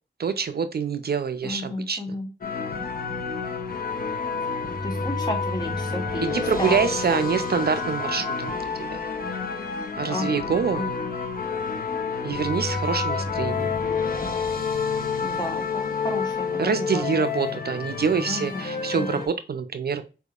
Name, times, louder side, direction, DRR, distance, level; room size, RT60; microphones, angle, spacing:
voice 1, 0.2-2.0 6.2-9.0 10.0-10.9 12.2-13.7 16.6-20.0, right 6 dB, 55° right, 9 dB, 0.4 m, -26 dB
voice 2, 1.4-2.3 4.8-7.6 8.0-8.2 10.1-11.1 15.2-17.1 17.5-17.8 18.3-19.2, left 1 dB, 20° left, 1 dB, 1.3 m, -33 dB
sound 1, 2.4-19.3, left 5 dB, 50° left, 0.7 m, -29 dB
sound 2, 7.2-10.0 10.9-11.9 12.5-16.5, right 1 dB, ahead, 2.1 m, -40 dB
4.3 x 3.5 x 2.3 m, 0.31 s
wide cardioid pair, 110°, 20 cm